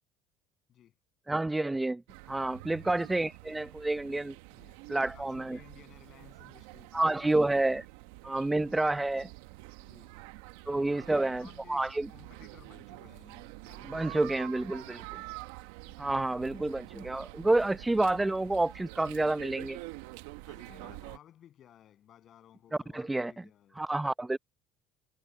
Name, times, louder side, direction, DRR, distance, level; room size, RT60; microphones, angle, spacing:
voice 1, 1.3-2.0 2.3-4.3 4.9-5.6 6.9-7.8 8.2-9.3 10.7-12.1 13.9-15.0 16.0-19.8 22.9-23.3 23.8-24.4, right 2 dB, 10° right, 0.8 m, -29 dB
sound 1, 2.1-21.2, right 20 dB, 85° right, 1.0 m, -47 dB
voice 2, 4.5-7.5 9.8-10.2 10.9-11.8 12.1-15.2 20.4-23.8, left 11 dB, 55° left, 7.9 m, -57 dB
supercardioid pair, 90°, 0 cm